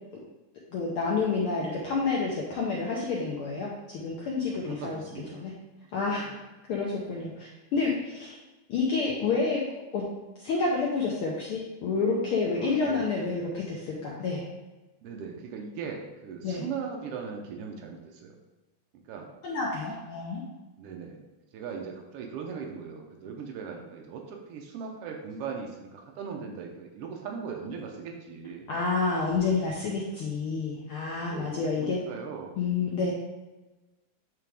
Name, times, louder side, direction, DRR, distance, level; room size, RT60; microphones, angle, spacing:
voice 1, 0.7-5.0 5.3-5.5 5.9-6.3 6.7-8.4 8.7-9.6 9.9-10.0 10.4-14.4 16.4-16.6 19.4-20.4 28.7-32.0 32.6-33.1, left 4 dB, 80° left, -4 dB, 1.2 m, -29 dB
voice 2, 4.6-5.5 6.0-6.4 12.5-13.1 15.0-18.3 19.1-19.3 20.8-21.2 21.5-28.7 31.2-32.5, right 6 dB, 85° right, 1 dB, 1.3 m, -39 dB
8.8 x 3.3 x 3.5 m, 1.1 s
omnidirectional pair, 3.5 m